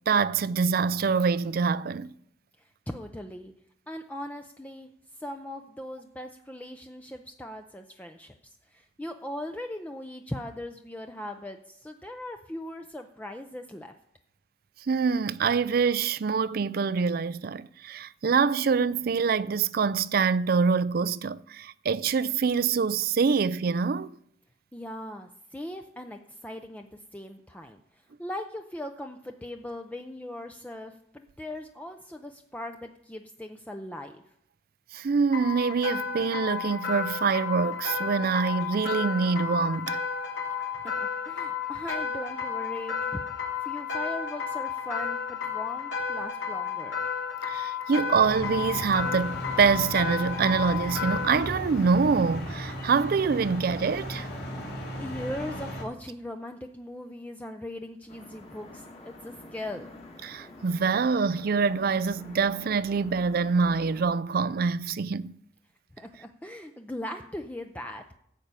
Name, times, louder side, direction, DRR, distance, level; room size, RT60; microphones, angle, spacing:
voice 1, 0.1-2.1 14.9-24.1 34.9-40.0 47.4-54.3 60.2-65.4, right 5 dB, 55° right, 0.4 m, -25 dB
voice 2, 2.9-3.5 3.9-4.9 5.2-13.9 24.7-27.8 28.2-34.2 40.8-47.1 55.0-59.9 65.9-68.0, left 1 dB, 10° left, 0.5 m, -39 dB
sound 1, 35.3-51.5, left 6 dB, 80° left, 3.4 m, -32 dB
sound 2, 48.2-55.8, equal, 60° left, 3.1 m, -36 dB
sound 3, 58.1-64.1, left 2 dB, 35° left, 1.9 m, -48 dB
13.0 x 5.6 x 8.2 m
head